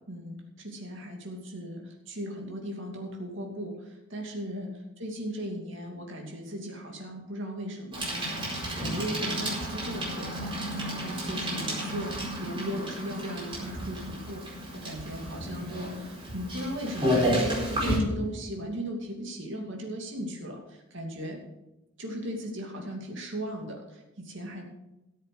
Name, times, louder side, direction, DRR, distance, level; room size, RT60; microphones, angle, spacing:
voice 1, 0.0-8.5 8.8-10.5 10.9-21.4 22.0-24.6, equal, 60° right, 1 dB, 2.7 m, -37 dB
Bicycle, 7.9-18.0, equal, 25° right, 4.5 m, -31 dB
14.0 x 7.5 x 6.7 m, 0.96 s
head